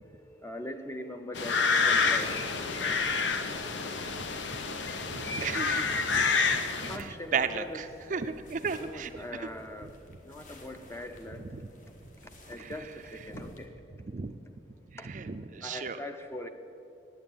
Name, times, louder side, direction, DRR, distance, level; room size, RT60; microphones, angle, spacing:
voice 1, 0.0-3.3 6.6-7.8 8.7-10.0 10.2-11.5 12.2-13.8 15.0-15.1 15.6-16.5, left 1 dB, 15° left, 7 dB, 0.6 m, -42 dB
sound 1, 1.4-7.0, left 5 dB, 80° left, 0.8 m, -28 dB
sound 2, 1.9-13.7, left 1 dB, 45° left, 1.3 m, -52 dB
voice 2, 5.1-6.2 6.8-7.6 8.1-8.2 8.5-9.1 14.1-14.4 15.1-16.0, right 5 dB, 40° right, 9 dB, 0.4 m, -33 dB
9.3 x 9.2 x 8.8 m, 2.8 s
head